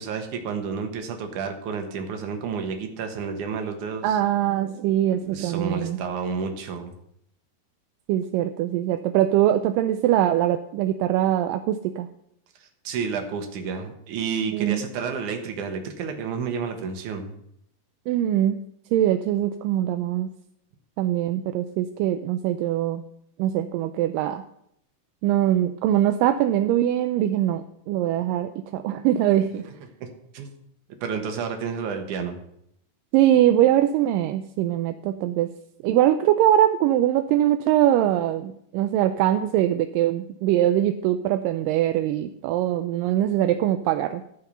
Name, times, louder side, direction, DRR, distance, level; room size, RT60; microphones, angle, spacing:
voice 1, 0.0-4.2 5.2-6.9 12.6-17.3 29.6-29.7 30.0-30.1 30.3-30.5 31.0-32.4, right 5 dB, 65° right, 5 dB, 2.7 m, -30 dB
voice 2, 4.0-6.0 8.1-12.1 14.5-14.9 18.1-18.6 18.9-20.3 21.0-23.0 23.4-24.4 25.2-29.6 33.1-35.5 35.8-44.2, right 12 dB, 80° right, 8 dB, 2.1 m, -22 dB
13.5 x 5.8 x 6.8 m, 0.73 s
omnidirectional pair, 4.0 m